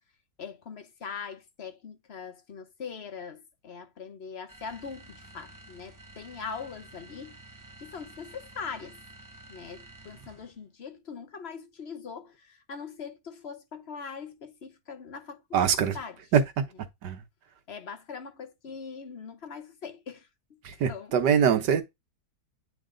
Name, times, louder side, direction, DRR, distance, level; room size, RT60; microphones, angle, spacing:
voice 1, 0.4-7.4 7.8-9.0 9.5-15.4 15.9-16.2 17.7-20.6 20.9-21.1, left 6 dB, 45° left, 1.0 m, -41 dB
sound 1, 4.5-10.6, right 2 dB, 25° right, 0.4 m, -51 dB
voice 2, 15.5-16.0 16.3-16.6 17.0-17.3 20.6-21.8, right 7 dB, 85° right, 1.6 m, -23 dB
9.1 x 3.1 x 3.8 m
omnidirectional pair, 1.8 m